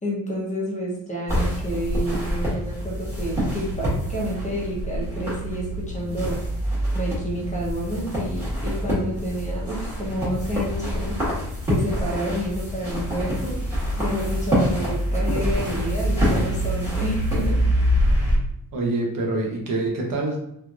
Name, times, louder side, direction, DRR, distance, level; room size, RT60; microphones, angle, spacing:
voice 1, 0.0-6.5 6.9-11.3 11.6-17.7, right 1 dB, 20° left, -4 dB, 0.9 m, -29 dB
sound 1, 1.3-18.4, equal, 5° right, 1.4 m, -25 dB
voice 2, 18.7-20.4, right 2 dB, 65° right, 0 dB, 0.9 m, -25 dB
3.2 x 3.1 x 2.4 m, 0.76 s
cardioid pair, 155°, 36 cm